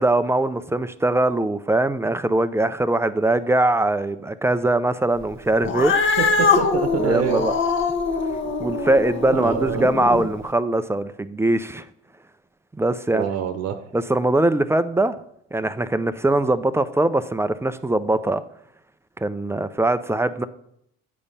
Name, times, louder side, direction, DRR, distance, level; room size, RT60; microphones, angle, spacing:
voice 1, 0.0-5.9 7.0-7.5 8.6-11.9 12.8-13.3 13.9-15.1 15.5-18.4 19.2-20.5, right 2 dB, 10° right, 12 dB, 0.4 m, -21 dB
Cat, 5.6-10.3, left 4 dB, 40° left, 1.2 m, -23 dB
voice 2, 6.2-7.4 9.3-9.8 13.1-13.8, right 8 dB, 55° right, 8 dB, 0.9 m, -26 dB
8.6 x 5.2 x 5.5 m, 0.72 s
supercardioid pair, 90°, 30 cm